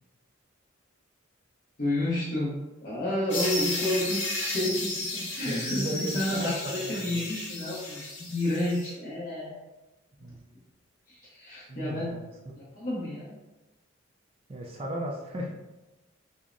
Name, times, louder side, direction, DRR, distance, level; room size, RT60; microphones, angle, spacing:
voice 1, 1.8-9.5 11.1-12.1 12.6-13.4, left 1 dB, 40° left, -7 dB, 0.8 m, -30 dB
sound 1, 3.3-8.9, left 2 dB, 60° left, 1.3 m, -34 dB
voice 2, 5.5-6.5 6.8-7.3 10.2-10.5 11.7-12.6 14.5-15.5, right 1 dB, 30° right, -1 dB, 0.4 m, -35 dB
6.0 x 2.0 x 2.5 m, 1.0 s
head